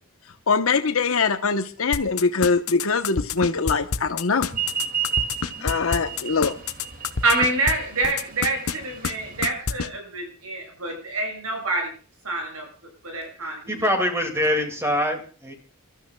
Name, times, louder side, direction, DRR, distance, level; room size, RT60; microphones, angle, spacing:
voice 1, 0.5-4.5 5.6-6.5, left 4 dB, 70° left, 7 dB, 0.9 m, -22 dB
sound 1, 1.9-7.7 8.0-8.8 9.0-9.1 9.4-9.9, left 5 dB, 90° left, 1.0 m, -26 dB
sound 2, 4.5-9.5, right 8 dB, 40° right, 2.2 m, -31 dB
voice 2, 7.2-11.9 12.2-12.7 13.0-13.9, right 2 dB, 80° right, 2 dB, 7.5 m, -26 dB
voice 3, 13.4-15.5, equal, 10° right, 4 dB, 2.1 m, -24 dB
30.0 x 13.0 x 2.2 m, 0.40 s
head